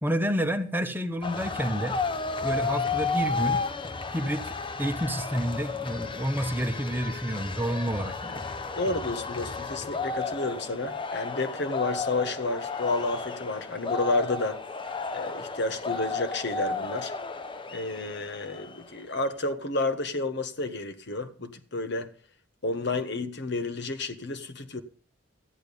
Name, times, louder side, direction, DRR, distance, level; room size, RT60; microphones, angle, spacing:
voice 1, 0.0-1.9 2.4-3.6 4.1-8.5, equal, 10° right, 1.1 m, -29 dB
sound 1, 1.2-19.0, left 4 dB, 25° left, 0.8 m, -33 dB
voice 2, 8.8-14.6 15.1-17.1 17.7-22.1 22.6-24.8, left 2 dB, 60° left, 1.4 m, -30 dB
14.0 x 10.5 x 5.3 m
head